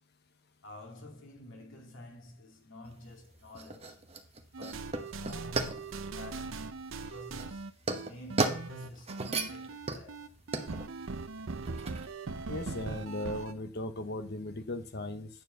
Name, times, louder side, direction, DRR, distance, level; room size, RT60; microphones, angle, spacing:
voice 1, 0.6-4.0 4.6-7.7 8.0-10.3, left 1 dB, 80° left, 2.4 m, -50 dB
sound 1, 2.8-12.1, right 3 dB, 30° right, 0.9 m, -37 dB
sound 2, 4.5-13.5, right 3 dB, 85° right, 0.7 m, -40 dB
voice 2, 12.5-15.3, left 1 dB, 55° left, 0.9 m, -37 dB
9.1 x 4.4 x 6.8 m
head